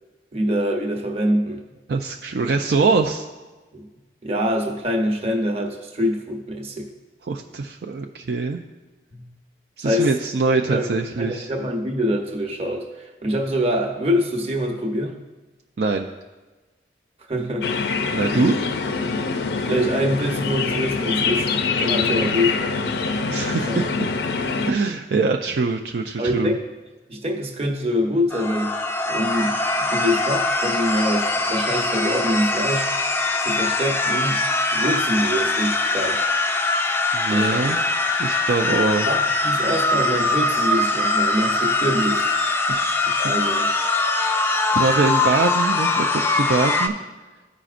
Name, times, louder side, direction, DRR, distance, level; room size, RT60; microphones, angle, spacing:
voice 1, 0.3-1.6 3.7-3.9 4.2-6.9 9.1-9.3 9.8-10.1 10.6-10.9 11.2-15.2 17.3-17.7 18.3-18.5 19.6-21.5 21.8-22.8 23.5-23.8 26.2-26.6 27.1-28.8 29.1-32.9 33.4-34.4 34.7-36.2 37.3-37.8 38.7-42.3 43.2-43.7, equal, 35° right, 1 dB, 0.9 m, -25 dB
voice 2, 1.9-3.3 7.3-8.6 9.8-11.5 15.8-16.1 18.1-18.5 23.3-24.1 24.6-26.5 37.1-37.8 38.2-39.1 42.7-43.2 44.7-46.9, right 4 dB, 60° right, 3 dB, 0.4 m, -23 dB
sound 1, 17.6-24.7, left 4 dB, 65° left, 0.5 m, -24 dB
sound 2, 28.3-46.9, left 2 dB, 10° left, 0.3 m, -22 dB
14.0 x 5.0 x 2.5 m, 1.2 s
head